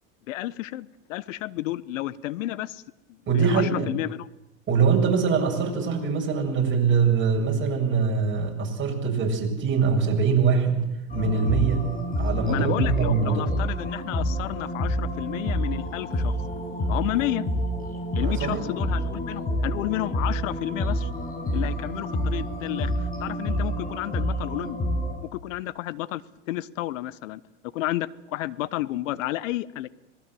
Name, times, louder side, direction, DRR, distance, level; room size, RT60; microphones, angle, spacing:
voice 1, 0.3-2.8 3.1-4.3 12.4-16.3 16.9-17.4 18.1-21.1 21.5-24.8 25.3-27.4 27.7-29.9, left 15 dB, 70° left, 18 dB, 1.1 m, -31 dB
voice 2, 3.3-3.9 4.7-10.8 11.1-13.5 18.2-18.7, right 5 dB, 30° right, 0 dB, 7.4 m, -23 dB
sound 1, 11.1-25.2, equal, 20° left, 5.9 m, -28 dB
25.0 x 19.0 x 7.7 m, 0.95 s
hypercardioid pair, 105°, 40 cm